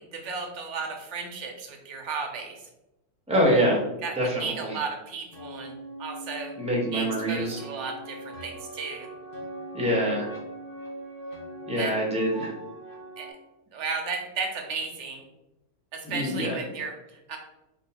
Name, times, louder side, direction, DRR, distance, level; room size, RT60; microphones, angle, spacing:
voice 1, 0.0-2.6 4.0-6.5 6.9-9.1 11.8-11.9 13.2-13.3 13.7-15.2 15.9-17.0 17.3-17.4, right 4 dB, 55° right, 3 dB, 1.0 m, -34 dB
voice 2, 3.3-3.8 4.2-4.8 6.6-7.6 9.7-10.3 11.7-12.5 16.0-16.6, equal, 5° right, -3 dB, 0.9 m, -25 dB
sound 1, 5.3-13.3, right 1 dB, 45° left, 0.9 m, -41 dB
3.8 x 3.0 x 4.1 m, 0.92 s
omnidirectional pair, 1.6 m